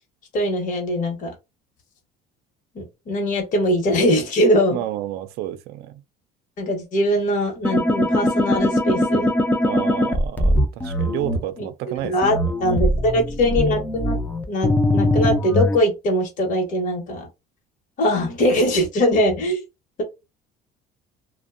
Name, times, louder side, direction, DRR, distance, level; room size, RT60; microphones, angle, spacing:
voice 1, 0.3-1.3 2.7-4.8 6.6-9.3 11.6-11.7 12.0-14.2 14.5-17.3 18.0-19.6, equal, 45° left, 1.0 m, -21 dB
voice 2, 4.7-6.0 9.6-12.4, right 12 dB, 65° right, 0.5 m, -30 dB
sound 1, 7.6-11.4 12.2-15.8, left 1 dB, 10° left, 0.4 m, -21 dB
2.5 x 2.1 x 2.4 m
cardioid pair, 120°, 18 cm